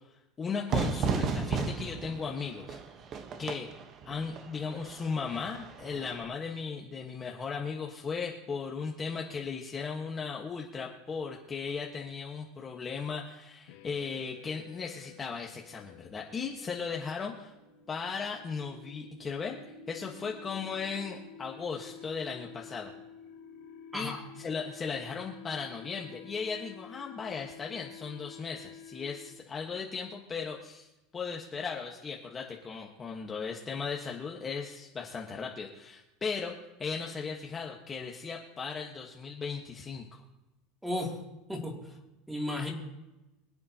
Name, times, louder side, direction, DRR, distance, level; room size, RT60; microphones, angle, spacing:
voice 1, 0.1-2.8 3.4-3.7 4.1-17.5 17.9-22.9 23.9-30.9 31.1-36.5 36.8-40.2, left 5 dB, 20° left, -1 dB, 1.3 m, -37 dB
Fire / Fireworks, 0.7-6.2, right 5 dB, 35° right, 1.1 m, -34 dB
sound 1, 13.7-29.6, left 6 dB, 70° left, 1.6 m, -51 dB
voice 2, 40.8-41.2 41.5-41.9 42.3-42.7, left 1 dB, 5° right, -1 dB, 2.7 m, -34 dB
25.0 x 8.6 x 2.9 m, 1.0 s
supercardioid pair, 140°, 0 cm